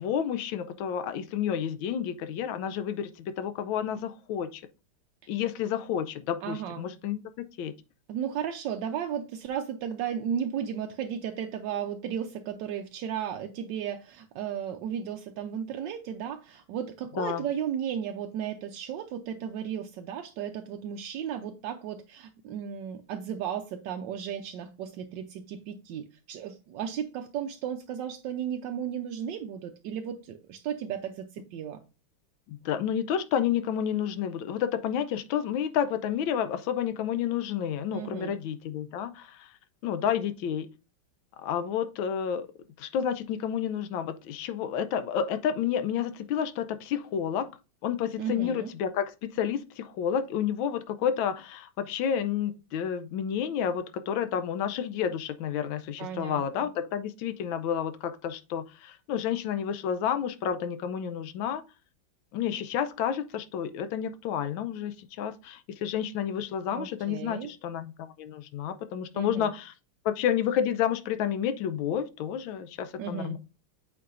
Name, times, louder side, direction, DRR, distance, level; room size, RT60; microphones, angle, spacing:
voice 1, 0.0-4.6 5.3-7.7 17.2-17.4 32.5-39.5 39.8-40.7 41.4-42.5 42.8-47.5 47.8-61.6 62.3-67.9 68.2-69.7 70.0-73.4, left 9 dB, 75° left, 1.3 m, -30 dB
voice 2, 6.4-6.8 8.1-31.8 37.9-38.3 48.2-48.7 56.0-56.7 66.7-67.5 69.1-69.5 73.0-73.4, right 8 dB, 75° right, 1.1 m, -34 dB
8.4 x 4.7 x 2.5 m
omnidirectional pair, 2.4 m